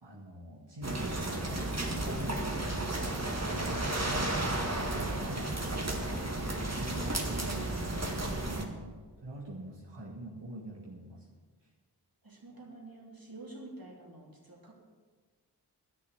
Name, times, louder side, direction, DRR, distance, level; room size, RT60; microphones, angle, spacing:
voice 1, 0.0-2.8 3.5-11.3, right 1 dB, 85° right, -5 dB, 2.0 m, -45 dB
sound 1, 0.8-8.6, right 1 dB, 40° right, 1.8 m, -33 dB
voice 2, 3.1-3.6 12.2-14.7, right 2 dB, 55° right, -2 dB, 3.2 m, -48 dB
12.0 x 6.9 x 9.2 m, 1.5 s
wide cardioid pair, 40°, 41 cm